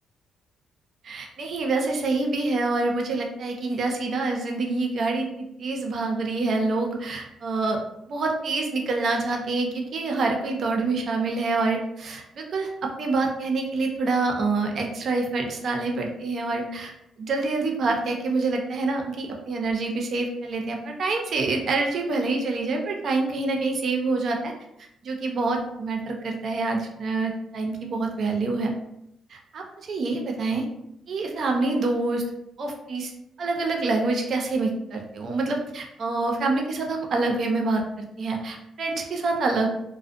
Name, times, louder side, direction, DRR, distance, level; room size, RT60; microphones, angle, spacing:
voice 1, 1.0-7.8 8.1-24.5 25.0-28.7 29.3-30.6 31.1-32.2 32.6-33.1 33.4-39.7, right 3 dB, 55° right, 2 dB, 0.5 m, -26 dB
2.5 x 2.1 x 2.4 m, 0.79 s
cardioid pair, 90°, 0 cm